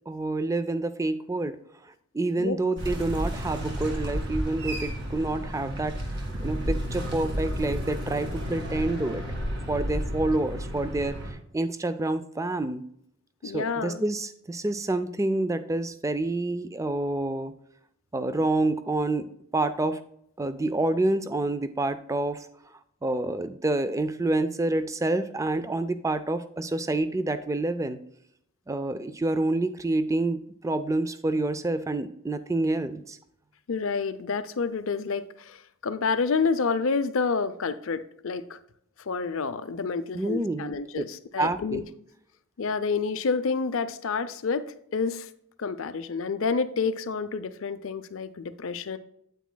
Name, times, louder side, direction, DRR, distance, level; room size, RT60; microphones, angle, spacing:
voice 1, 0.1-1.6 1.8-9.2 9.7-11.2 11.5-12.8 13.4-17.5 18.1-20.0 20.4-22.5 23.0-28.0 28.7-33.2 40.1-40.7 41.4-41.8, right 2 dB, 15° right, 12 dB, 0.3 m, -28 dB
sound 1, 2.8-11.3, equal, 50° right, 1.8 m, -32 dB
voice 2, 13.4-14.0 33.7-38.6 39.1-41.8 42.6-44.7 44.9-45.3 45.6-49.0, left 5 dB, 60° left, 12 dB, 0.5 m, -29 dB
9.2 x 8.3 x 2.2 m, 0.72 s
head